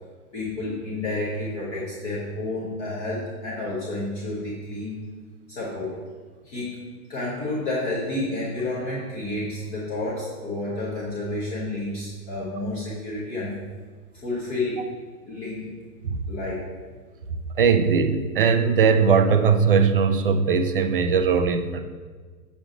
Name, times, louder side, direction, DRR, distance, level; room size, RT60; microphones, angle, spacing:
voice 1, 0.3-5.1 5.5-6.0 6.4-6.8 7.1-13.6 14.2-14.8 15.3-15.7 16.3-16.6, left 2 dB, 15° left, -7 dB, 0.8 m, -30 dB
voice 2, 17.6-21.8, right 6 dB, 40° right, 7 dB, 0.4 m, -20 dB
7.1 x 6.1 x 3.8 m, 1.5 s
hypercardioid pair, 160°, 47 cm